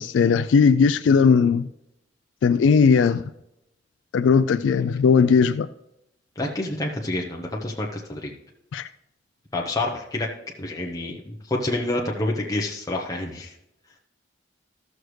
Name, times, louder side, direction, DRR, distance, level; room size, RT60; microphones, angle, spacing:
voice 1, 0.0-1.7 2.4-3.3 4.1-5.7 8.7-8.9, left 5 dB, 90° left, 12 dB, 0.3 m, -18 dB
voice 2, 6.4-8.3 9.5-10.3 10.6-13.5, left 2 dB, 20° left, -1 dB, 0.8 m, -28 dB
14.5 x 6.5 x 3.2 m, 0.83 s
head